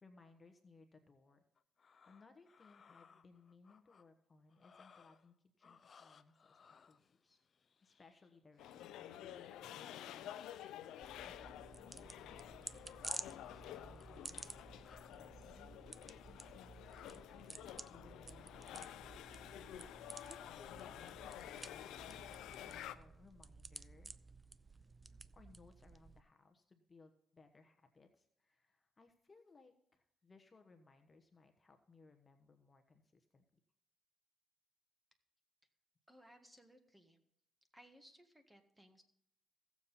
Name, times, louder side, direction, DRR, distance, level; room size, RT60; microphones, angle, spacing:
voice 1, 0.0-1.4 2.1-7.4 7.8-10.8 11.2-19.3 19.8-24.1 25.0-33.6, left 4 dB, 30° left, 6 dB, 1.1 m, -65 dB
sound 1, 1.6-4.0 4.5-5.3 5.6-8.9 10.3-10.9 11.2-11.5 12.0-15.2, left 6 dB, 45° left, 0.6 m, -66 dB
sound 2, 8.6-23.0, left 11 dB, 85° left, 0.6 m, -51 dB
sound 3, 11.0-26.2, right 3 dB, 25° right, 0.5 m, -53 dB
voice 2, 36.1-37.2 37.7-39.0, equal, 10° right, 6 dB, 1.7 m, -63 dB
16.0 x 7.2 x 4.2 m, 0.75 s
cardioid pair, 90°, 0 cm